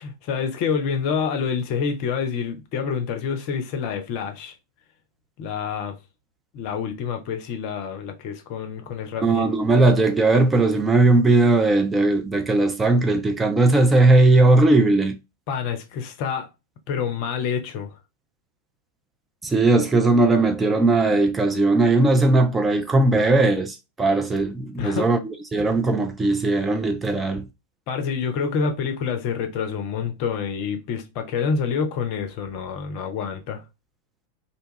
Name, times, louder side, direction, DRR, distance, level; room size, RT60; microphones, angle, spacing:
voice 1, 0.0-4.5 5.4-6.0 6.5-9.5 15.5-16.5 16.9-17.9 24.8-25.1 27.9-33.6, left 6 dB, 45° left, 0.5 m, -27 dB
voice 2, 9.2-15.2 19.4-27.5, right 2 dB, 10° right, 0.4 m, -18 dB
2.7 x 2.3 x 2.7 m
figure-of-eight pair, 90°, 0 cm